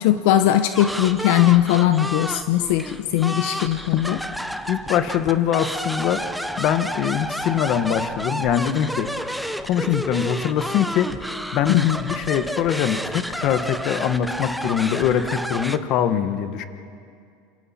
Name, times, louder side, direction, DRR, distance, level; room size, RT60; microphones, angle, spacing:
voice 1, 0.0-4.2 9.9-10.0 11.7-12.0, left 13 dB, 70° left, 8 dB, 0.9 m, -19 dB
sound 1, 0.7-15.8, equal, ahead, 0.7 m, -30 dB
voice 2, 4.7-6.2 6.6-9.1 9.6-11.1 11.5-16.6, left 9 dB, 50° left, 10 dB, 1.2 m, -23 dB
28.0 x 27.0 x 4.3 m, 2.3 s
supercardioid pair, 135°, 0 cm